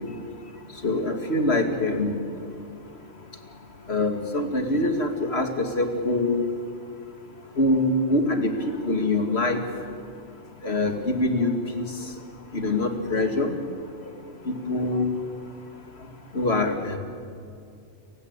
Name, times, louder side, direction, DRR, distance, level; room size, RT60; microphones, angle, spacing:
voice 1, 0.8-2.2 3.9-6.4 7.6-8.5 8.8-9.6 10.6-11.8 12.5-13.5 14.5-15.1 16.3-17.0, left 2 dB, 55° left, 5 dB, 2.6 m, -24 dB
29.5 x 16.5 x 8.3 m, 2.6 s
omnidirectional pair, 1.3 m